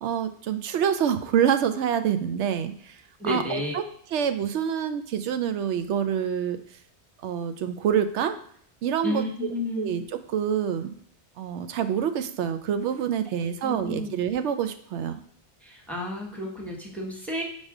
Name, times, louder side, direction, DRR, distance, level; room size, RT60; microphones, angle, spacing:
voice 1, 0.0-3.0 3.2-3.8 4.1-6.6 7.2-8.4 8.8-9.2 9.8-10.9 11.4-15.2, right 8 dB, 90° right, 9 dB, 0.9 m, -26 dB
voice 2, 3.2-3.7 9.0-9.9 13.6-14.1 15.6-17.4, left 1 dB, ahead, -1 dB, 1.1 m, -31 dB
4.9 x 4.1 x 4.9 m, 0.62 s
omnidirectional pair, 1.1 m